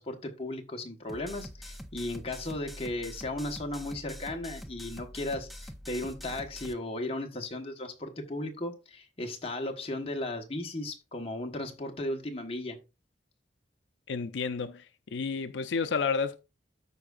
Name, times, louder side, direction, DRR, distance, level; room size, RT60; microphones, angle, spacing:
voice 1, 0.0-12.8, left 1 dB, 35° left, 1.3 m, -36 dB
sound 1, 1.1-6.7, equal, ahead, 0.6 m, -45 dB
voice 2, 14.1-16.4, left 5 dB, 85° left, 0.5 m, -31 dB
13.5 x 4.7 x 2.5 m
head